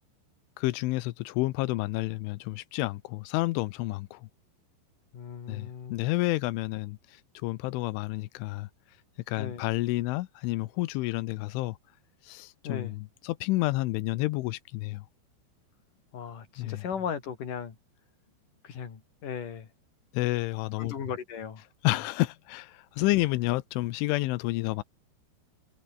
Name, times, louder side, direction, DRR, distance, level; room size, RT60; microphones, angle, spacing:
voice 1, 0.6-4.3 5.5-8.7 9.3-11.8 12.2-15.1 16.6-16.8 20.1-21.0 21.8-24.8, left 19 dB, 90° left, 3.3 m, -30 dB
voice 2, 5.1-6.0 9.4-9.6 12.6-12.9 16.1-17.8 18.6-19.7 20.8-22.0, left 7 dB, 45° left, 4.5 m, -37 dB
omnidirectional pair, 5.4 m